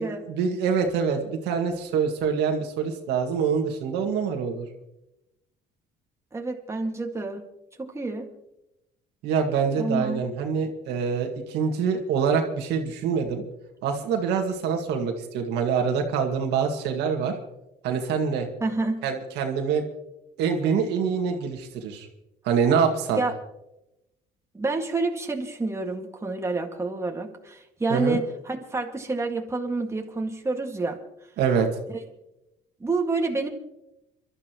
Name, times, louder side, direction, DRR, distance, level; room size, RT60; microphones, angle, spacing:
voice 1, 0.3-4.7 9.2-13.4 13.8-17.4 17.8-18.5 19.0-19.8 20.4-22.1 22.4-23.2 27.9-28.2 31.4-31.7, right 6 dB, 85° right, 3 dB, 2.0 m, -25 dB
voice 2, 6.3-7.4 7.8-8.3 9.8-10.3 18.6-19.0 23.2-23.3 24.5-31.0 31.9-32.0 32.8-33.5, right 3 dB, 15° right, 2 dB, 2.0 m, -28 dB
28.5 x 12.5 x 3.1 m, 0.90 s
cardioid pair, 110°, 17 cm